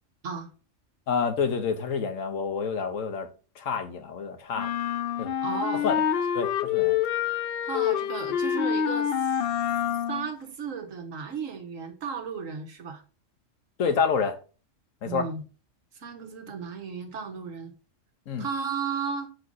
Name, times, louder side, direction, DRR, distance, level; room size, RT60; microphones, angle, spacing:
voice 1, 1.1-3.3 3.6-4.7 5.2-5.3 5.8-5.9 6.3-7.0 13.8-14.4 15.0-15.3 18.3-18.5, left 6 dB, 90° left, 1.3 m, -28 dB
sound 1, 4.6-10.3, left 9 dB, 60° left, 0.7 m, -27 dB
voice 2, 5.4-5.8 7.6-9.4 10.1-13.0 15.0-15.4 16.0-17.7 18.4-19.3, right 6 dB, 80° right, 1.6 m, -34 dB
6.2 x 4.9 x 4.0 m
omnidirectional pair, 1.3 m